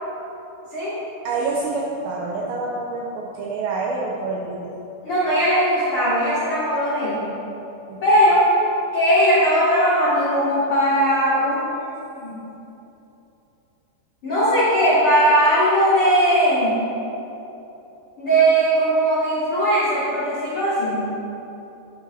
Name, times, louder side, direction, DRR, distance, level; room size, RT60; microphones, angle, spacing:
voice 1, 1.2-4.7 7.9-8.0, right 3 dB, 85° right, -3 dB, 2.5 m, -27 dB
voice 2, 5.0-7.3 8.0-8.4 8.9-11.9 12.2-12.4 14.2-16.8 18.2-21.1, right 1 dB, 90° left, -11 dB, 1.2 m, -19 dB
10.5 x 9.7 x 2.8 m, 3.0 s
omnidirectional pair, 5.9 m